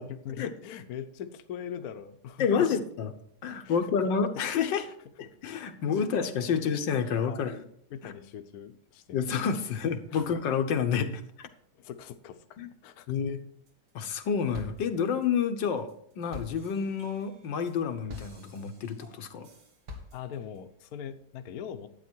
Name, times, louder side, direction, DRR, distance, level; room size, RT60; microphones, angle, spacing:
voice 1, 0.0-2.8 3.6-3.9 4.8-4.9 5.9-6.2 6.5-6.6 7.0-7.6 7.9-9.2 10.1-10.3 11.7-13.1 20.1-21.9, left 8 dB, 65° left, 8 dB, 1.2 m, -42 dB
voice 2, 2.4-3.1 3.4-4.9 5.2-7.6 8.0-8.1 9.1-11.5 12.6-12.7 13.1-13.4 14.0-15.9 16.2-19.5, left 6 dB, 85° left, 7 dB, 1.7 m, -29 dB
sound 1, 13.7-14.2 14.5-20.6, left 3 dB, 70° right, 2.4 m, -48 dB
12.0 x 8.9 x 4.5 m, 0.67 s
omnidirectional pair, 1.9 m